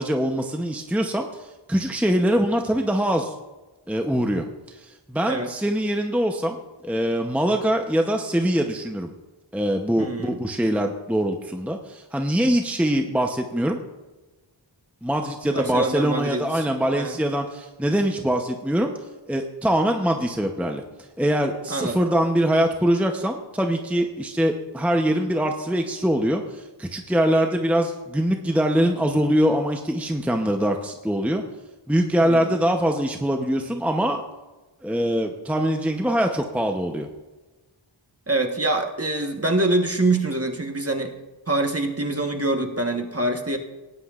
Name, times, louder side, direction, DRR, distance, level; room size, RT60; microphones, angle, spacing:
voice 1, 0.0-3.3 3.9-6.6 6.8-9.1 9.5-13.8 15.0-18.9 19.3-20.8 21.2-31.4 31.9-34.2 34.8-37.1, equal, 5° right, 3 dB, 0.8 m, -23 dB
voice 2, 10.0-10.4 15.4-16.6 16.9-17.2 21.7-22.0 32.2-32.5 38.3-41.1 41.5-43.6, right 2 dB, 30° right, 4 dB, 1.3 m, -25 dB
18.5 x 9.9 x 2.5 m, 1.2 s
wide cardioid pair, 50°, 47 cm